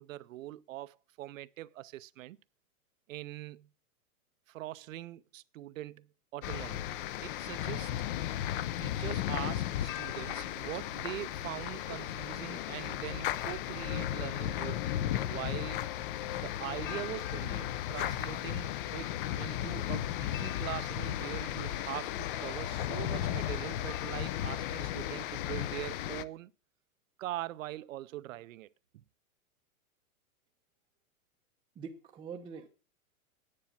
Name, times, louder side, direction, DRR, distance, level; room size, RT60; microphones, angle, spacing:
voice 1, 0.0-2.4 3.1-3.7 4.5-6.8 7.2-8.0 8.8-14.9 15.3-15.9 16.4-26.5 27.2-28.7 28.9-29.0, right 15 dB, 65° right, 0.6 m, -42 dB
sound 1, 6.4-26.2, left 12 dB, 40° left, 0.6 m, -35 dB
voice 2, 31.7-32.7, right 6 dB, 10° right, 0.6 m, -44 dB
9.9 x 8.5 x 7.3 m
hypercardioid pair, 145°, 44 cm